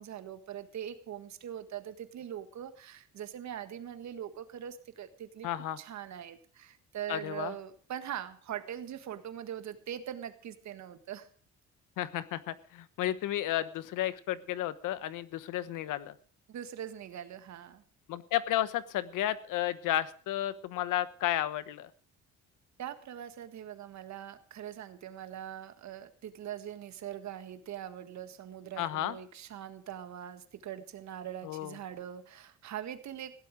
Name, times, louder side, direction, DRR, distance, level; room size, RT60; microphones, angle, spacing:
voice 1, 0.0-5.5 5.8-11.3 16.5-17.8 22.8-33.3, right 10 dB, 60° right, 10 dB, 1.7 m, -42 dB
voice 2, 5.4-5.8 7.1-7.5 12.0-16.1 18.1-21.9 28.8-29.2 31.4-31.7, left 13 dB, 80° left, 15 dB, 1.1 m, -32 dB
16.5 x 11.5 x 5.0 m, 0.44 s
cardioid pair, 110°, 31 cm